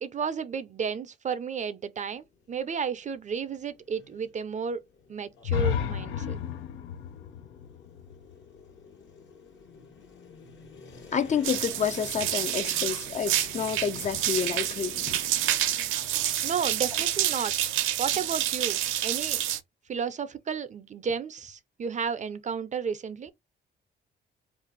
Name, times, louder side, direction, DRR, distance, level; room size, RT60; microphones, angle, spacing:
voice 1, 0.0-4.8 5.1-6.4 16.4-17.5 18.0-19.4 19.9-23.3, right 6 dB, 40° right, 0.5 m, -32 dB
sound 1, 2.1-17.4, left 4 dB, 65° left, 1.3 m, -50 dB
sound 2, 5.4-9.3, left 8 dB, 85° left, 0.5 m, -32 dB
voice 2, 11.1-15.2, left 7 dB, 35° left, 0.5 m, -29 dB
sound 3, 11.4-19.6, right 12 dB, 90° right, 0.5 m, -28 dB
2.5 x 2.3 x 3.9 m
cardioid pair, 90°, 20 cm